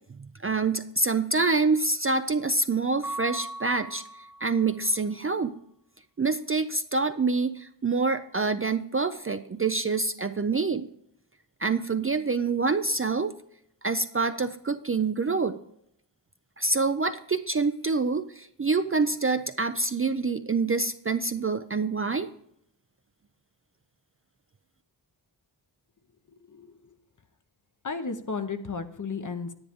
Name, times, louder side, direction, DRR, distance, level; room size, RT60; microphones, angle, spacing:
voice 1, 0.4-4.0 4.4-5.5 6.2-10.9 11.6-13.3 13.8-15.6 16.6-22.3, right 4 dB, 30° right, 9 dB, 0.4 m, -26 dB
Mallet percussion, 3.0-4.8, right 1 dB, ahead, 1.1 m, -38 dB
voice 2, 26.3-26.9 27.8-29.5, left 4 dB, 40° left, 9 dB, 0.9 m, -34 dB
10.0 x 9.8 x 3.6 m, 0.72 s
wide cardioid pair, 105°, 45 cm